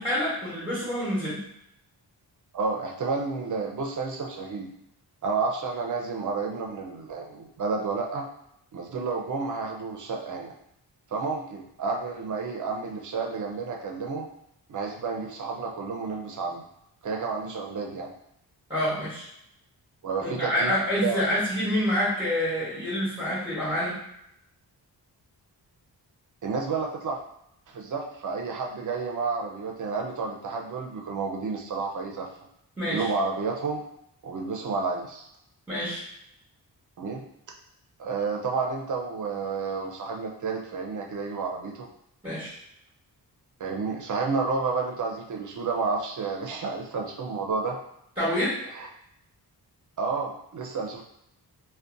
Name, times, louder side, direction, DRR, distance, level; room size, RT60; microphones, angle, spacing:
voice 1, 0.0-1.4 18.7-19.3 20.2-24.0 32.8-33.1 35.7-36.0 42.2-42.5 48.2-48.6, equal, 10° right, -9 dB, 1.0 m, -27 dB
voice 2, 2.5-4.7 5.2-8.3 8.7-10.5 11.1-14.3 14.7-16.6 17.0-18.1 20.0-20.7 21.0-21.2 26.4-27.2 27.7-32.3 32.9-33.8 34.2-35.3 37.0-37.2 38.0-41.9 43.6-47.8 48.7-48.9 50.0-51.0, right 4 dB, 50° right, 0 dB, 0.5 m, -30 dB
2.5 x 2.2 x 2.5 m, 0.77 s
cardioid pair, 85°, 40 cm